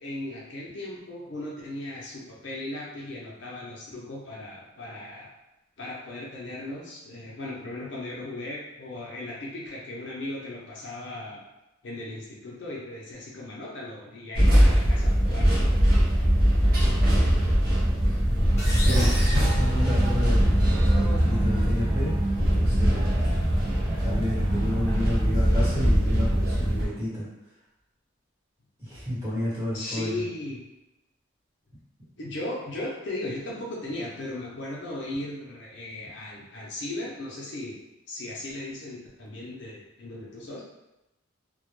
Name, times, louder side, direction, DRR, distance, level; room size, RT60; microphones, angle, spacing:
voice 1, 0.0-5.3 5.8-11.4 11.8-15.6 29.7-30.6 32.2-37.8 38.1-40.6, left 1 dB, 60° left, -3 dB, 0.5 m, -37 dB
sound 1, 14.4-26.9, equal, 45° right, 0.6 m, -21 dB
sound 2, 18.6-20.5, equal, 15° left, 0.6 m, -36 dB
voice 2, 18.7-22.1 22.4-23.2 24.0-27.3 28.8-30.2, left 1 dB, 15° right, -11 dB, 1.0 m, -31 dB
sound 3, 18.8-25.3, equal, 80° right, 1.0 m, -38 dB
2.1 x 2.0 x 3.0 m, 0.96 s
head